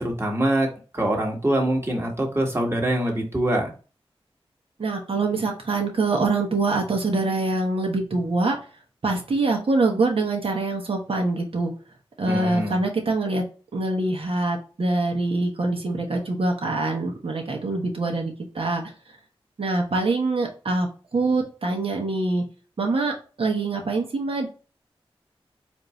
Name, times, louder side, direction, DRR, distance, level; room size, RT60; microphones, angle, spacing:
voice 1, 0.0-3.7 12.3-12.8, right 1 dB, 25° right, 0 dB, 1.6 m, -24 dB
voice 2, 4.8-8.6 9.0-11.7 12.2-13.4 13.7-18.8 19.6-22.4 22.8-24.5, right 3 dB, 70° right, 1 dB, 1.2 m, -24 dB
4.3 x 2.7 x 3.2 m, 0.36 s
cardioid pair, 45°, 10 cm